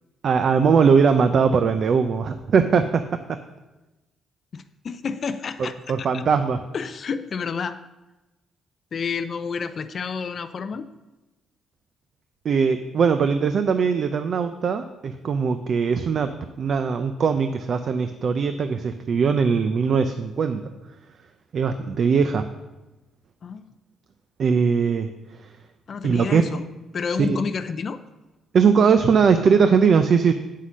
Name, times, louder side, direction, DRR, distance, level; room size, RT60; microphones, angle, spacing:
voice 1, 0.2-3.0 5.6-6.6 12.4-16.3 16.6-20.7 21.5-22.4 24.4-25.1 25.4-25.5 26.0-26.4 27.2-27.4 28.5-30.3, right 6 dB, 55° right, 9 dB, 0.5 m, -20 dB
voice 2, 4.5-6.2 6.7-7.8 8.9-10.9 23.4-23.6 25.9-26.6 26.9-28.0, left 5 dB, 50° left, 10 dB, 0.5 m, -30 dB
8.2 x 5.7 x 6.2 m, 1.1 s
cardioid pair, 90°, 0 cm